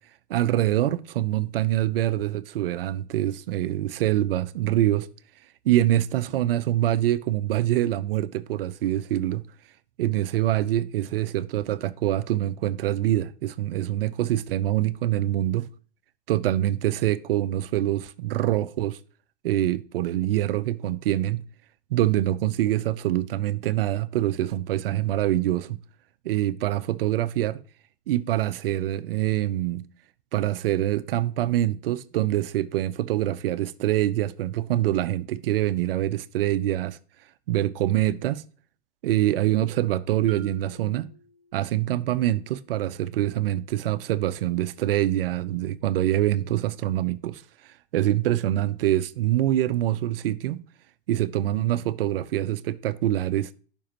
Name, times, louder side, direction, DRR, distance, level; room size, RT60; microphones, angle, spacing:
voice 1, 0.3-5.1 5.6-9.4 10.0-15.7 16.3-19.0 19.4-21.5 21.9-25.8 26.2-27.6 28.1-29.9 30.3-37.0 37.5-38.4 39.0-41.1 41.5-47.4 47.9-50.6 51.1-53.5, right 13 dB, 70° right, 0.6 m, -25 dB
Marimba xylophone, 40.3-42.0, right 4 dB, 25° right, 2.1 m, -48 dB
11.0 x 5.2 x 2.9 m
hypercardioid pair, 105°, 30 cm